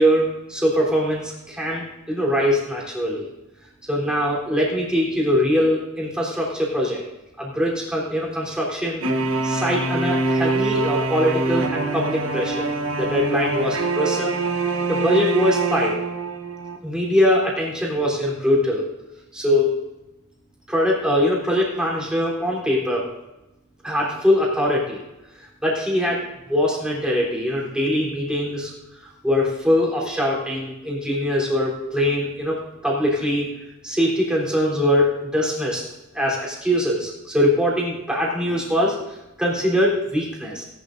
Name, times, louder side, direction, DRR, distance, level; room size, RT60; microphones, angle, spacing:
voice 1, 0.0-3.3 3.9-7.0 7.4-9.0 9.4-14.4 14.9-15.9 16.8-18.8 19.3-19.8 20.7-23.1 23.8-25.0 25.6-26.2 26.5-28.7 29.2-33.5 33.8-35.1 35.3-35.9 36.1-39.0 39.4-40.6, equal, 5° right, -5 dB, 3.7 m, -22 dB
Wicked Marcato Dump, 9.0-16.8, right 3 dB, 65° right, 1.1 m, -24 dB
19.0 x 11.5 x 2.7 m, 0.99 s
head